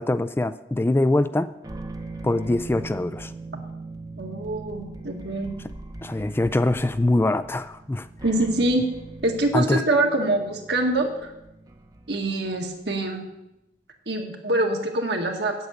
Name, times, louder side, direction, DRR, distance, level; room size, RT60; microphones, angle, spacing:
voice 1, 0.0-1.5 2.2-3.3 6.0-8.1 9.5-9.8, left 2 dB, 15° left, 12 dB, 0.3 m, -23 dB
sound 1, 1.6-13.0, right 2 dB, 20° right, 0.8 m, -40 dB
voice 2, 4.2-5.5 8.2-8.9 9.2-11.3 12.1-13.2 14.1-15.6, right 2 dB, 70° right, 2 dB, 1.9 m, -24 dB
8.7 x 8.3 x 8.2 m, 0.91 s
head